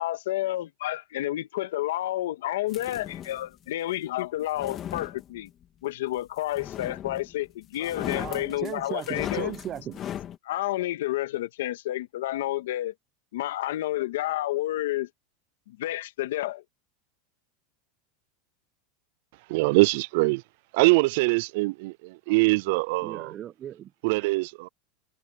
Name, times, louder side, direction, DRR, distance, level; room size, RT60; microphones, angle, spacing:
voice 1, 0.0-5.5 5.8-9.5 10.4-12.9 13.3-15.1 15.7-16.6, left 15 dB, 80° left, 1.8 m, -30 dB
sound 1, 2.7-3.5 4.4-5.6 6.5-7.4 7.7-10.4, left 10 dB, 35° left, 2.6 m, -37 dB
voice 2, 8.1-10.0 22.3-22.4 23.0-23.9, right 11 dB, 35° right, 0.8 m, -37 dB
voice 3, 19.5-20.4 20.7-23.3 24.0-24.7, right 24 dB, 65° right, 0.4 m, -23 dB
supercardioid pair, 120°, 0 cm